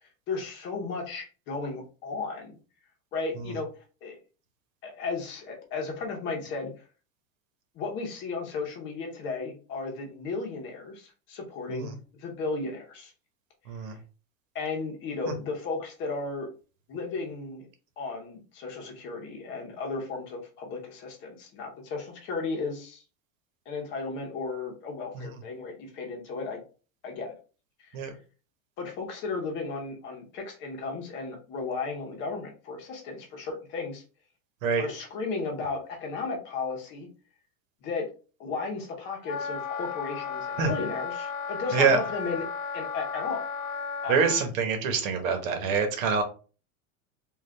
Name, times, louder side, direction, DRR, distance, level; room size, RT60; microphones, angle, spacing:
voice 1, 0.3-2.5 3.1-3.7 4.0-4.2 4.8-6.7 7.8-13.1 14.5-16.5 16.9-17.7 18.0-23.0 23.7-26.6 27.0-27.3 27.8-28.0 28.8-34.0 34.8-37.1 37.8-38.1 38.4-42.4 42.7-43.4 44.0-44.2, left 4 dB, 30° left, 1 dB, 0.8 m, -34 dB
voice 2, 13.7-14.0 27.9-28.1 34.6-34.9 40.6-40.7 41.7-42.0 44.1-46.2, right 5 dB, 85° right, 6 dB, 1.2 m, -25 dB
Wind instrument woodwind instrument, 39.2-44.5, left 5 dB, 80° left, 1.2 m, -34 dB
3.7 x 2.4 x 3.4 m, 0.35 s
supercardioid pair, 170°, 40 cm